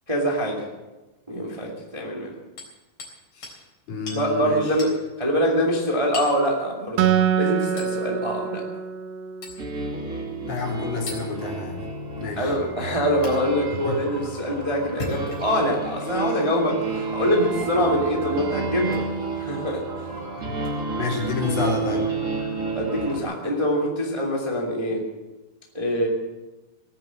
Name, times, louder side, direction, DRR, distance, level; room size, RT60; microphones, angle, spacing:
voice 1, 0.1-0.6 1.3-2.3 4.1-7.0 7.4-8.6 12.4-19.0 19.4-20.1 22.7-25.0 25.7-26.1, equal, 10° right, -1 dB, 1.8 m, -24 dB
Hammer, 2.6-3.2 3.4-3.6 4.1-4.2 4.8-5.0 6.1-6.4 7.8-8.0 9.4-9.6 11.1-11.2 13.2-13.3 14.8-15.6 16.4-16.5 17.8-18.0 18.9-19.1 20.6-20.7, left 2 dB, 45° left, 5.0 m, -36 dB
voice 2, 3.9-4.8 10.4-11.8 12.2-12.6 13.8-14.0 20.3-20.6 21.0-22.0, left 5 dB, 65° left, -2 dB, 5.1 m, -29 dB
Acoustic guitar, 7.0-10.4, right 8 dB, 80° right, 1.4 m, -25 dB
sound 1, 9.6-23.2, right 4 dB, 30° right, 1.8 m, -30 dB
18.5 x 9.7 x 7.6 m, 1.1 s
omnidirectional pair, 4.4 m